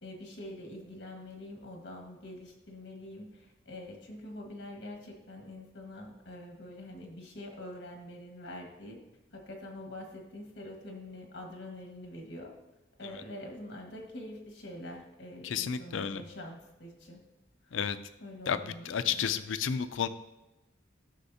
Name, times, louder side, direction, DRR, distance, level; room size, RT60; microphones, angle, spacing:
voice 1, 0.0-9.0 9.3-12.5 13.0-17.2 17.6-17.8 18.2-19.4, left 1 dB, 60° left, 1 dB, 1.6 m, -45 dB
voice 2, 15.4-16.2 17.7-18.0 18.5-18.6 18.9-20.1, left 7 dB, 90° left, 12 dB, 0.5 m, -31 dB
11.5 x 6.4 x 2.8 m, 1.0 s
head